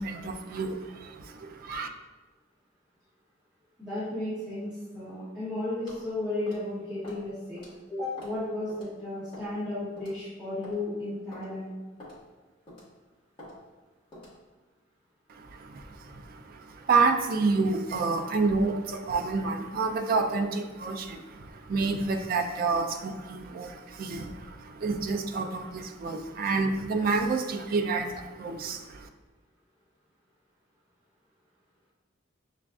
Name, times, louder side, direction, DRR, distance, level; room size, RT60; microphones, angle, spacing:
voice 1, 0.0-1.9 15.3-29.1, right 4 dB, 45° right, 5 dB, 0.3 m, -29 dB
voice 2, 3.8-7.6 7.9-11.7, left 2 dB, 5° right, -14 dB, 1.3 m, -34 dB
sound 1, 5.9-6.1 6.5-6.7 7.0-7.2 7.6-7.7 8.2-8.4 8.7-8.9 9.3-9.6 10.0-10.1 10.6-10.8 11.3-11.5 12.0-12.2 12.7-12.9 13.4-13.5 14.1-14.4, left 1 dB, 25° left, 1.3 m, -46 dB
7.1 x 2.4 x 2.3 m, 1.2 s
head